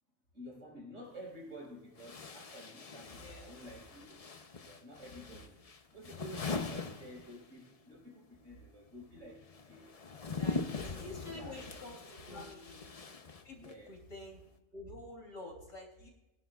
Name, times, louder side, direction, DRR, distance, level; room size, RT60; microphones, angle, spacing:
voice 1, 0.3-4.2 4.6-5.6 5.9-9.9 10.4-12.6 13.6-14.0, equal, 65° right, -4 dB, 5.6 m, -51 dB
sound 1, 1.0-1.1 2.0-7.8 8.0-13.9, left 4 dB, 35° left, 0.6 m, -42 dB
voice 2, 3.2-3.5 10.4-13.1 13.4-14.4 14.7-16.1, left 2 dB, 70° left, 1 dB, 3.4 m, -48 dB
21.0 x 11.0 x 2.4 m, 0.94 s
omnidirectional pair, 1.4 m